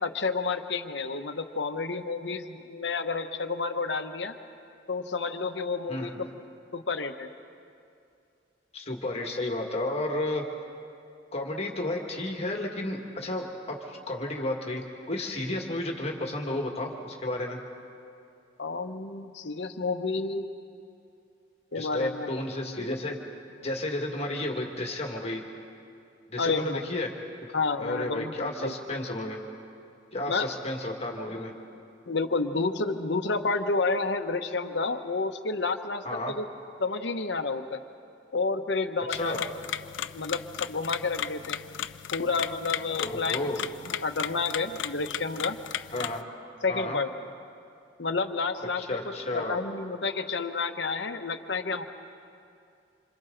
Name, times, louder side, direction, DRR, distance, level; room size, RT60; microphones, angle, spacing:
voice 1, 0.0-4.3 4.9-6.4 6.7-7.3 18.6-20.5 21.7-22.3 26.4-26.8 27.5-28.7 30.3-30.5 32.1-36.4 36.8-37.8 38.3-39.5 40.1-41.6 42.1-43.4 43.9-45.6 46.6-47.1 48.0-48.8 49.3-51.8, left 4 dB, 65° left, 7 dB, 1.0 m, -30 dB
voice 2, 8.7-10.4 11.3-17.6 21.7-23.2 23.6-25.4 26.3-27.1 27.8-29.4 30.1-31.5 36.0-36.3 39.1-39.4 43.0-43.6 45.9-46.3 46.7-47.0 48.8-49.6, left 1 dB, 35° left, 1 dB, 1.9 m, -32 dB
sound 1, 39.1-46.2, left 10 dB, 85° left, 0.5 m, -36 dB
27.0 x 27.0 x 4.0 m, 2.5 s
head